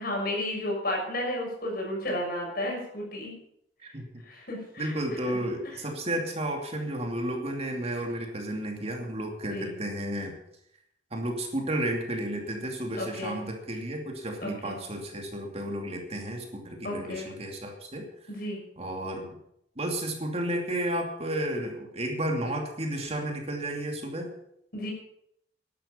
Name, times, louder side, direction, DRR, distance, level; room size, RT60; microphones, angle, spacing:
voice 1, 0.0-3.3 3.9-4.0 4.2-5.0 9.5-9.8 13.0-13.4 14.4-14.8 16.8-17.3 18.3-18.6 24.7-24.9, left 1 dB, 55° left, 0 dB, 6.3 m, -32 dB
voice 2, 4.8-10.4 11.1-18.1 18.8-19.4 19.8-24.3, right 1 dB, 35° right, 2 dB, 2.7 m, -32 dB
12.5 x 11.5 x 7.0 m, 0.74 s
head